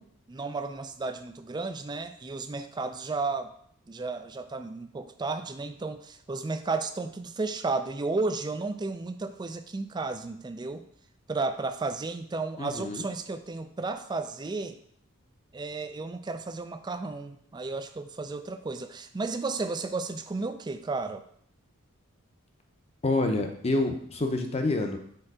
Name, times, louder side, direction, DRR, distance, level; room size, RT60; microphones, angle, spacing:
voice 1, 0.0-3.5 3.9-10.8 11.3-14.8 15.5-21.2, right 3 dB, 20° right, 9 dB, 0.3 m, -33 dB
voice 2, 12.6-13.0 23.0-25.0, left 2 dB, 30° left, 4 dB, 0.6 m, -27 dB
4.6 x 4.3 x 4.9 m, 0.65 s
head